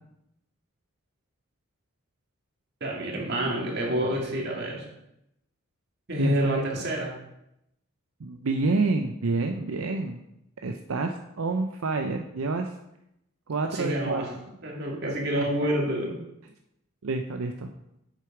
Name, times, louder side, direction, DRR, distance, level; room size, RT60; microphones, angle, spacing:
voice 1, 2.8-4.8 6.1-7.1 13.7-14.3 14.6-16.1, equal, 50° right, -1 dB, 2.2 m, -28 dB
voice 2, 6.2-6.7 8.2-10.2 10.6-12.7 13.5-14.2 15.4-15.5 17.0-17.7, right 3 dB, 80° right, 5 dB, 0.6 m, -28 dB
7.7 x 6.7 x 4.9 m, 0.83 s
head